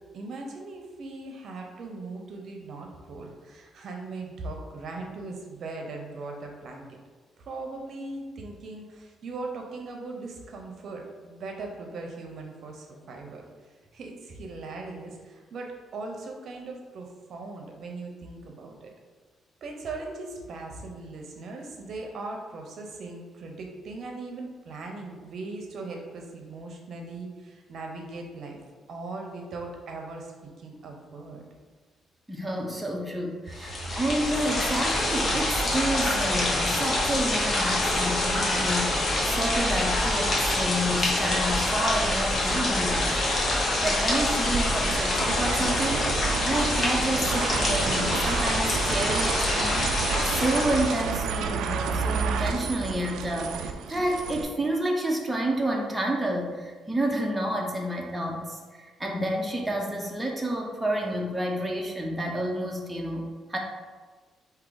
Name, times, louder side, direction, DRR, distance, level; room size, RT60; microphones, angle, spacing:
voice 1, 0.1-6.8 7.5-13.5 13.9-18.9 19.6-28.6 28.9-31.4, right 3 dB, 60° right, 2 dB, 0.7 m, -39 dB
voice 2, 32.3-46.1 46.4-49.8 50.2-63.2 63.5-63.6, right 1 dB, 10° right, 0 dB, 0.7 m, -29 dB
sound 1, 33.5-51.2, left 1 dB, 45° left, 1.1 m, -26 dB
sound 2, 44.5-54.4, right 6 dB, 80° right, 0.3 m, -31 dB
4.7 x 2.8 x 3.9 m, 1.4 s
cardioid pair, 90°, 0 cm